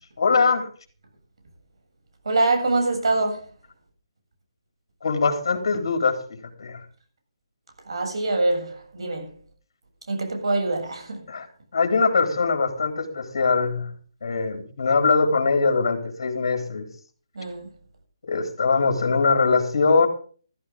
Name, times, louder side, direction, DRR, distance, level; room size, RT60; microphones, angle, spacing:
voice 1, 0.2-0.7 5.0-6.2 6.6-6.8 11.3-11.5 11.7-13.9 14.2-16.9 18.3-20.1, left 4 dB, 65° left, 3.7 m, -22 dB
voice 2, 2.2-3.4 7.9-9.3 10.1-11.3 17.3-17.7, right 2 dB, 75° right, 7.6 m, -24 dB
14.5 x 14.0 x 3.8 m
hypercardioid pair, 160°, 3 cm